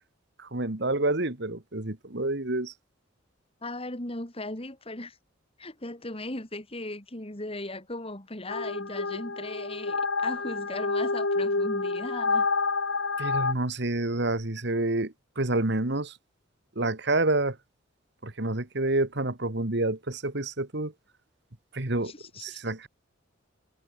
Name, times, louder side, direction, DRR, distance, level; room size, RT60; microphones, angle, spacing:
voice 1, 0.4-2.7 13.2-16.1 16.8-17.6 18.2-20.9 21.7-22.1 22.4-22.9, right 2 dB, 60° right, 2.0 m, -28 dB
voice 2, 3.6-5.2 5.6-12.5 22.0-22.6, left 2 dB, 30° left, 3.0 m, -37 dB
sound 1, 8.5-13.5, left 3 dB, 85° left, 2.4 m, -28 dB
head